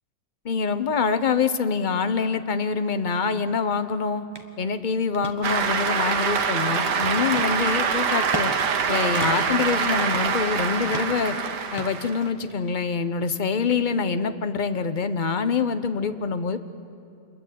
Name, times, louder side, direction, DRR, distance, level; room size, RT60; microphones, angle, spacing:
voice 1, 0.4-4.2 4.6-8.5 8.9-11.4 11.7-16.6, left 5 dB, 35° left, 10 dB, 0.8 m, -25 dB
sound 1, 4.3-4.5 4.9-5.3 5.9-6.8 7.3-7.5 8.1-8.5 8.8-8.9 9.1-9.6 10.0-10.6 10.9-11.3 11.8-12.6, right 2 dB, 15° right, 1.5 m, -36 dB
Cheering / Applause, 5.4-12.3, right 6 dB, 75° right, 1.9 m, -25 dB
26.5 x 22.0 x 9.2 m, 2.6 s
omnidirectional pair, 1.8 m